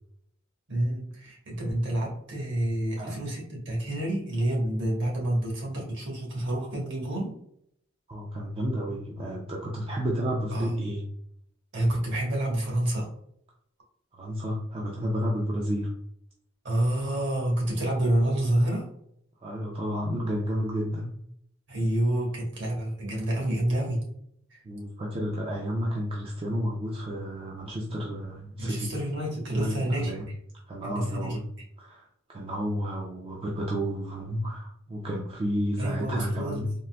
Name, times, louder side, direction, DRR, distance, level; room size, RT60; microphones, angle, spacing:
voice 1, 0.7-7.4 10.5-10.8 11.7-13.1 16.6-18.9 21.7-24.0 24.5-24.6 28.6-30.4 30.8-31.4 35.8-36.7, right 1 dB, 60° right, -1 dB, 1.2 m, -28 dB
voice 2, 8.1-11.0 14.2-15.9 19.4-21.1 24.6-28.9 29.5-30.3 30.7-31.4 31.8-36.7, equal, 25° right, -3 dB, 0.4 m, -31 dB
3.7 x 2.5 x 2.2 m, 0.71 s
head